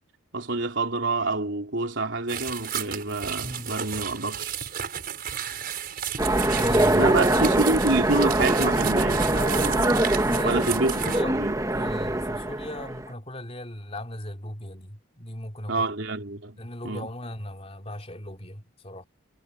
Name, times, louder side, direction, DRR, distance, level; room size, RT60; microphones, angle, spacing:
voice 1, 0.3-4.6 6.9-10.0 10.4-11.5 15.7-16.6 16.8-17.1, right 2 dB, 65° right, 3.6 m, -27 dB
sound 1, 2.3-11.2, right 9 dB, 50° right, 5.9 m, -33 dB
voice 2, 3.4-3.7 6.5-7.4 10.3-11.4 11.7-15.9 16.6-19.0, left 1 dB, 30° left, 3.5 m, -38 dB
Train, 6.2-13.1, right 1 dB, 15° right, 1.3 m, -23 dB
head